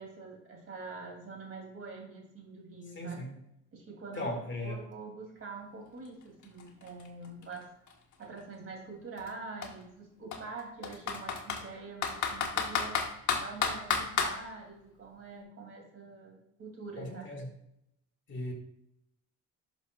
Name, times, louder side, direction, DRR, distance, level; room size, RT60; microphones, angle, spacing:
voice 1, 0.0-3.2 3.7-4.3 4.6-7.7 8.2-13.0 13.4-17.3, right 3 dB, 45° right, 1 dB, 2.8 m, -45 dB
voice 2, 2.9-3.4 4.2-4.8 17.0-17.5 18.3-18.5, left 1 dB, 35° left, 1 dB, 2.2 m, -37 dB
Computer keyboard, 6.0-6.1 6.4-8.4 9.2-9.3 9.6-9.7 10.3-11.6 12.0-14.3, left 6 dB, 65° left, 1.5 m, -31 dB
11.5 x 6.0 x 2.3 m, 0.78 s
cardioid pair, 105°, 31 cm